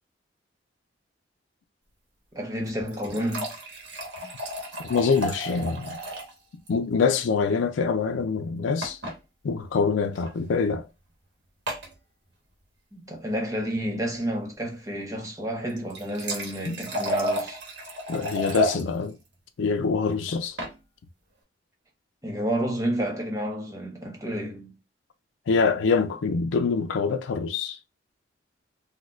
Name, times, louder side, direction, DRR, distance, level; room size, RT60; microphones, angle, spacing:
voice 1, 2.3-3.5 12.9-17.6 22.2-24.7, equal, 20° right, 0.8 m, -30 dB
sound 1, 2.6-6.4 6.7-6.8 7.0-7.1 8.8-9.2 10.1-10.3 11.7-11.9 15.7-18.8 20.3-20.8, equal, 65° right, 1.0 m, -32 dB
voice 2, 4.9-6.0 6.7-9.0 9.4-10.9 16.6-16.7 18.1-19.2 19.6-20.6 25.5-27.8, left 5 dB, 85° left, 0.4 m, -25 dB
4.1 x 2.2 x 2.4 m
head